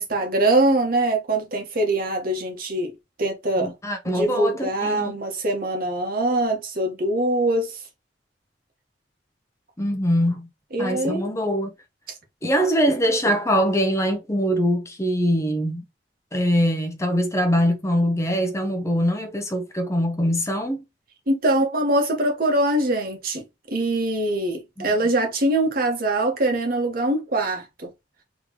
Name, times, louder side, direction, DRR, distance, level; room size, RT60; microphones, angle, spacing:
voice 1, 0.0-2.9 3.2-3.7 4.0-7.8 10.7-11.3 21.3-23.4 23.7-27.9, right 1 dB, 50° right, 1.3 m, -23 dB
voice 2, 3.6-5.2 9.8-10.5 10.8-11.7 12.4-15.8 16.3-20.8 24.8-24.9, equal, 15° left, 0.8 m, -23 dB
3.8 x 3.3 x 2.9 m
head